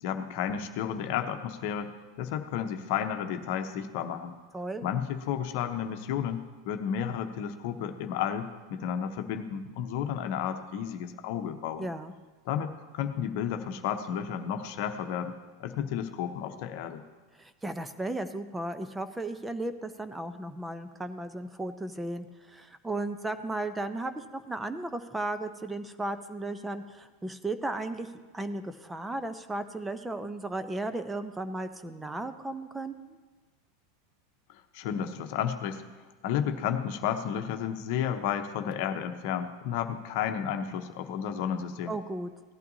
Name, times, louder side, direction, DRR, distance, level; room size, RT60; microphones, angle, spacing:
voice 1, 0.0-1.9 2.2-4.3 4.8-11.9 12.5-15.3 15.6-17.0 34.7-35.8 36.2-42.0, left 8 dB, 60° left, 7 dB, 0.9 m, -32 dB
voice 2, 4.5-4.9 11.8-12.1 17.4-32.9 41.9-42.3, right 2 dB, 10° right, 10 dB, 0.7 m, -35 dB
17.5 x 12.0 x 2.8 m, 1.3 s
hypercardioid pair, 90°, 0 cm